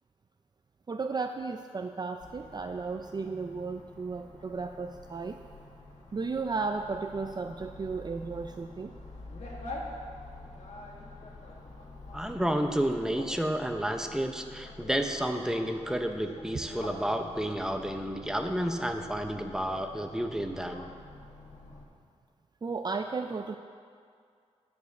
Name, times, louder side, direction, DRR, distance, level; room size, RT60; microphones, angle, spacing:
voice 1, 0.9-5.4 6.1-8.9 22.6-23.6, right 4 dB, 35° right, 6 dB, 0.4 m, -34 dB
sound 1, 2.2-21.8, left 2 dB, 80° left, 1.8 m, -46 dB
voice 2, 12.1-20.8, right 1 dB, 5° right, 5 dB, 0.8 m, -31 dB
10.5 x 5.2 x 6.7 m, 2.2 s
wide cardioid pair, 75°, 12 cm